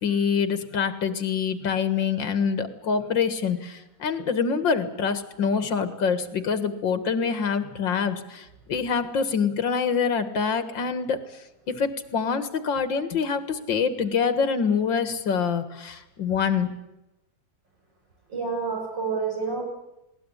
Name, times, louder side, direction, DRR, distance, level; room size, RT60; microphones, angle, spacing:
voice 1, 0.0-11.2 11.7-16.7, left 6 dB, 80° left, 11 dB, 2.4 m, -25 dB
voice 2, 18.3-19.6, right 5 dB, 75° right, 0 dB, 8.9 m, -28 dB
20.0 x 18.5 x 10.0 m, 0.91 s
omnidirectional pair, 2.0 m